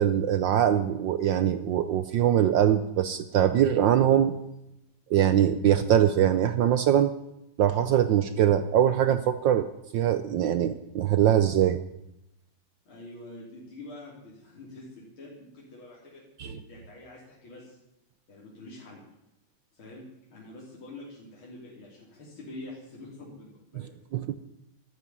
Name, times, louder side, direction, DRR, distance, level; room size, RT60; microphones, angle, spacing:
voice 1, 0.0-4.3 5.1-7.1 7.6-11.8 16.4-16.6 23.8-23.9 24.1-24.4, right 10 dB, 70° right, 11 dB, 1.3 m, -23 dB
voice 2, 12.9-17.8 18.3-19.0 19.7-20.0 20.3-24.0, left 2 dB, 70° left, -5 dB, 4.2 m, -46 dB
13.5 x 9.4 x 9.5 m, 0.86 s
omnidirectional pair, 2.4 m